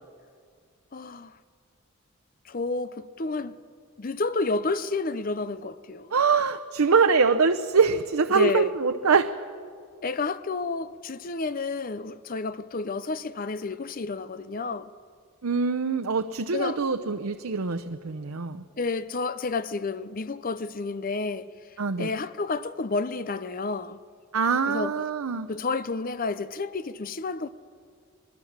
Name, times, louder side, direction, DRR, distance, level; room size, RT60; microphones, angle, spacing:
voice 1, 0.9-1.3 2.5-3.5 4.0-6.1 8.3-8.7 10.0-14.9 16.5-16.8 18.8-21.5 22.0-24.0 24.7-24.9 25.5-27.5, left 3 dB, 40° left, 0.6 m, -30 dB
voice 2, 6.1-9.3 15.4-18.6 21.8-22.1 24.3-25.5, right 5 dB, 90° right, 0.7 m, -24 dB
25.0 x 20.0 x 7.3 m
head